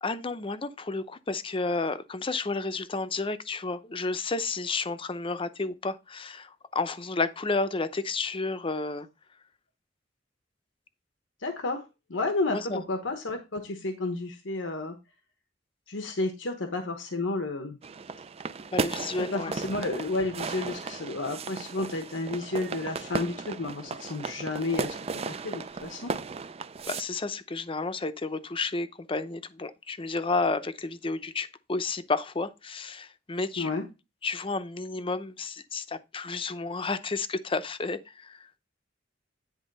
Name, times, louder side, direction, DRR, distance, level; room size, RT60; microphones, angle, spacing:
voice 1, 0.0-9.1 12.5-12.8 18.7-19.6 26.9-33.8 34.2-38.5, left 3 dB, 30° left, 0.7 m, -31 dB
voice 2, 11.4-11.8 12.1-15.0 15.9-17.8 19.3-24.9 25.3-26.1 33.6-33.8, left 2 dB, 90° left, 1.1 m, -31 dB
sound 1, 17.8-27.0, right 4 dB, 35° right, 0.4 m, -35 dB
10.0 x 3.6 x 5.4 m
head